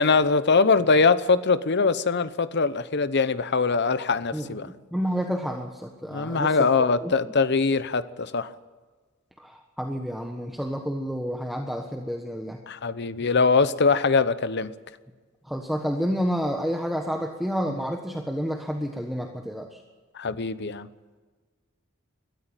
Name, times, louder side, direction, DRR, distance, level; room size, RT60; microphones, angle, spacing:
voice 1, 0.0-4.7 6.1-8.5 12.7-14.7 20.2-20.9, left 4 dB, 55° left, 0.9 m, -22 dB
voice 2, 4.3-6.7 7.0-7.3 9.4-12.6 15.4-19.8, equal, ahead, 1.3 m, -30 dB
21.5 x 13.5 x 9.0 m
head